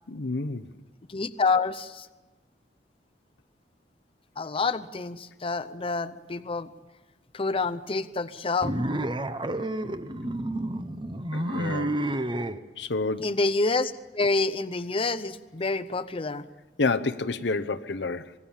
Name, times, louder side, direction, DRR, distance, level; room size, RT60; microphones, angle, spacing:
voice 1, 0.1-0.7 11.3-12.0 12.8-13.3 16.8-18.3, left 3 dB, 80° left, 0.9 m, -29 dB
voice 2, 1.1-2.1 4.4-6.7 7.3-8.8 13.2-16.5, left 3 dB, 30° left, 0.7 m, -28 dB
sound 1, 8.6-12.6, right 1 dB, 30° right, 0.9 m, -30 dB
25.0 x 20.0 x 7.3 m
head